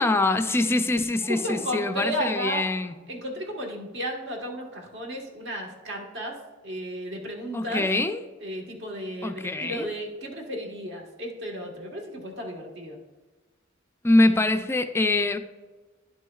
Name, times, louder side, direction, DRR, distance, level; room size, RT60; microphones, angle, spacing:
voice 1, 0.0-2.9 7.5-8.2 9.2-9.9 14.0-15.4, left 2 dB, 10° left, 0.3 m, -24 dB
voice 2, 1.2-2.6 3.1-6.4 6.6-7.8 8.4-13.0, equal, 60° right, 1.4 m, -33 dB
11.0 x 6.1 x 2.3 m
head